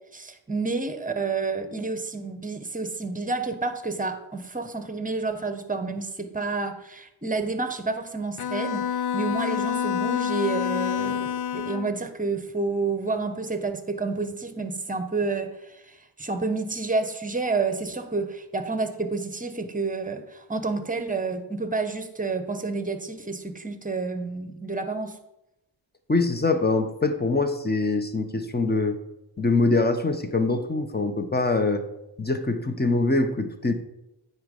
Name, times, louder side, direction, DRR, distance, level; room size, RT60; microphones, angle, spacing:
voice 1, 0.1-25.2, right 3 dB, 15° right, 9 dB, 1.0 m, -29 dB
Bowed string instrument, 8.4-12.0, left 9 dB, 55° left, 0.5 m, -27 dB
voice 2, 26.1-29.0 29.4-31.8 32.2-33.7, left 3 dB, 20° left, 8 dB, 1.0 m, -24 dB
9.4 x 4.5 x 5.3 m, 0.88 s
cardioid pair, 65°, 48 cm